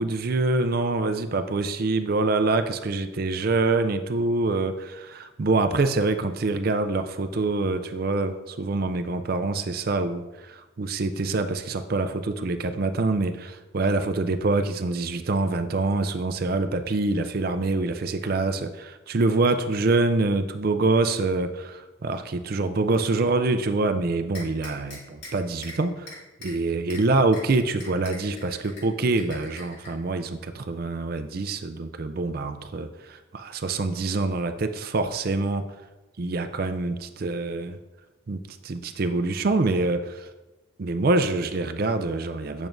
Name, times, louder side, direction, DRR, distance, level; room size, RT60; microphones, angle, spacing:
voice 1, 0.0-26.1 26.4-35.6 36.2-37.8 38.3-40.3 40.8-42.7, right 3 dB, 45° right, 9 dB, 0.4 m, -25 dB
flamenco clappers, 24.3-25.3 25.6-25.8 26.1-26.5 26.9-27.0 27.3-27.4 27.8-28.8 29.2-29.9, left 2 dB, 55° left, 2.4 m, -41 dB
8.9 x 6.0 x 2.6 m, 1.1 s
head